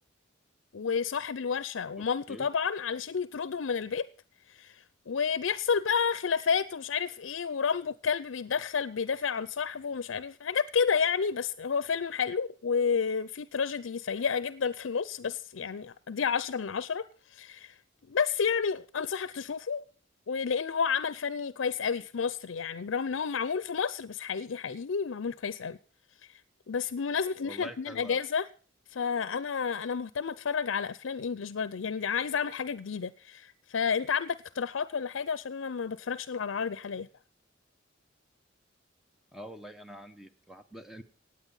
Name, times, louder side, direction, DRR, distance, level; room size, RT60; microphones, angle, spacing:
voice 1, 0.7-4.1 4.5-17.8 18.1-19.8 20.3-25.8 26.3-26.4 26.7-28.5 28.9-37.1, left 6 dB, 75° left, 0.5 m, -31 dB
voice 2, 2.0-2.5 27.4-28.2 39.3-41.0, equal, ahead, 0.9 m, -45 dB
17.5 x 8.7 x 5.5 m
head